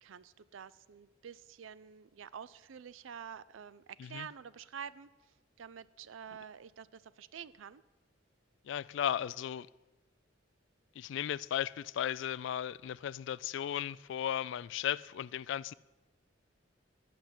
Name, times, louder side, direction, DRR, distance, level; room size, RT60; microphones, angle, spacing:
voice 1, 0.0-5.1 5.6-7.8, right 7 dB, 85° right, 0.4 m, -48 dB
voice 2, 8.7-9.7 11.0-15.7, left 10 dB, 70° left, 0.3 m, -36 dB
12.0 x 5.8 x 8.0 m
head